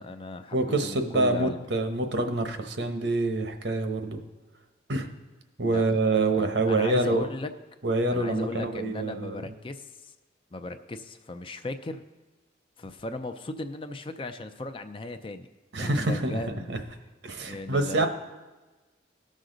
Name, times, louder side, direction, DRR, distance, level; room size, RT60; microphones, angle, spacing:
voice 1, 0.0-1.6 5.6-7.5 8.1-10.1 10.5-12.0 12.8-15.5 15.8-16.7 17.4-18.1, left 2 dB, 30° left, 9 dB, 0.5 m, -37 dB
voice 2, 0.5-4.2 4.9-5.1 5.6-7.2 7.8-9.4 15.7-16.4 16.7-16.8 17.2-18.1, right 2 dB, 75° right, 6 dB, 1.0 m, -26 dB
18.0 x 6.4 x 3.9 m, 1.2 s
head